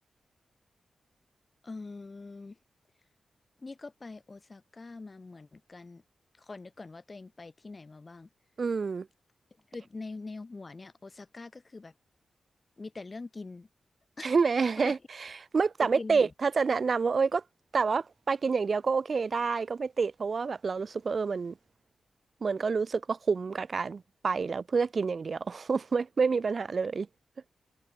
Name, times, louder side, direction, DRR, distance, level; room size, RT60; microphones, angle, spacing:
voice 1, 1.6-2.6 3.6-6.0 6.4-8.3 9.7-11.9 12.8-13.7 14.2-14.3 14.8-14.9 15.8-16.3, left 3 dB, 35° left, 4.5 m, -43 dB
voice 2, 8.6-9.1 14.2-17.4 17.7-21.5 22.4-27.1, right 5 dB, 50° right, 0.8 m, -28 dB
open air
wide cardioid pair, 100°, 0 cm